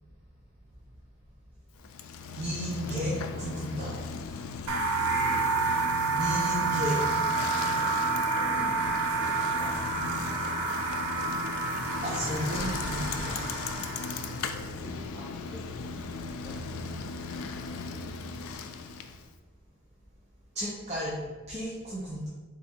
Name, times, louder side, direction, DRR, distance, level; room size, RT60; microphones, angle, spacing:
Bicycle, 1.8-19.3, left 4 dB, 75° left, 0.3 m, -37 dB
voice 1, 2.4-4.0 6.1-7.0 8.5-8.8 12.0-13.4 20.5-21.2 21.5-22.3, equal, 30° right, -6 dB, 0.5 m, -33 dB
sound 1, 4.7-14.4, right 4 dB, 80° right, 0.6 m, -29 dB
voice 2, 5.1-5.9 7.8-8.0 9.1-9.7 10.0-10.6 14.8-15.6 16.2-16.6 21.0-21.3, left 1 dB, 15° right, -10 dB, 1.3 m, -46 dB
3.5 x 2.4 x 4.2 m, 1.3 s
head